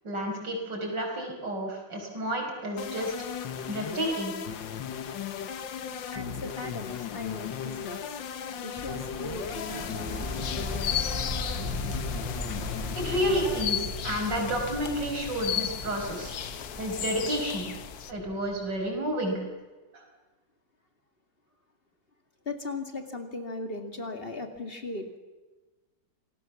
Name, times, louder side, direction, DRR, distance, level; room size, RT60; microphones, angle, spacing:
voice 1, 0.0-3.1 3.7-4.3 13.0-16.3 16.8-17.7 18.1-19.4, equal, 70° right, 1 dB, 6.2 m, -30 dB
sound 1, 2.8-13.6, left 8 dB, 80° left, 1.9 m, -37 dB
voice 2, 6.1-8.2 8.6-11.0 22.5-25.1, left 3 dB, 30° left, 6 dB, 2.4 m, -38 dB
sound 2, 8.8-19.0, left 1 dB, 10° right, 1.8 m, -38 dB
sound 3, 9.5-18.1, left 9 dB, 60° left, 1.4 m, -35 dB
26.5 x 18.5 x 7.2 m, 1.2 s
omnidirectional pair, 2.0 m